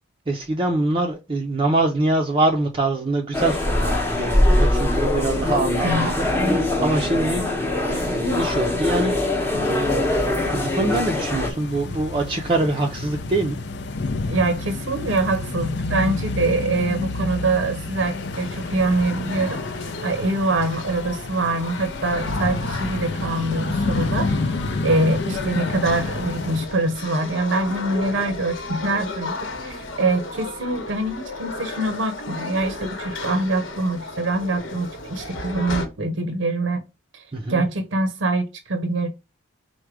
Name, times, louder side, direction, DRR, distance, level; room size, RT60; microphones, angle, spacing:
voice 1, 0.3-9.7 10.5-13.6 37.3-37.6, right 2 dB, 25° right, 0.5 m, -24 dB
sound 1, 3.3-11.5, left 1 dB, 10° left, 0.8 m, -22 dB
voice 2, 5.8-6.6 14.3-19.6 20.0-24.4 24.8-29.4 29.6-36.8 37.1-37.2 37.5-39.1, right 2 dB, 70° right, 0.6 m, -24 dB
sound 2, 9.6-26.7, left 3 dB, 60° left, 0.5 m, -30 dB
sound 3, 18.0-35.9, left 2 dB, 80° left, 1.0 m, -34 dB
4.7 x 2.1 x 4.6 m
head